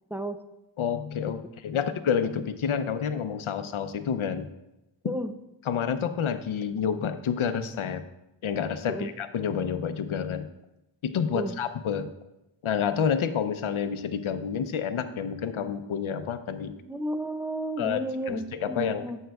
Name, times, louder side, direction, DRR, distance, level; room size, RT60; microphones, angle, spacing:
voice 1, 0.1-0.4 1.8-1.9 5.0-5.3 8.9-9.1 11.3-11.6 16.9-19.2, right 1 dB, 5° right, 7 dB, 0.5 m, -32 dB
voice 2, 0.8-4.5 5.7-8.0 8.4-10.5 11.0-12.1 12.6-16.7 17.8-18.0 18.3-19.1, left 7 dB, 75° left, 10 dB, 0.7 m, -29 dB
14.0 x 5.5 x 2.3 m, 0.91 s
wide cardioid pair, 70°, 48 cm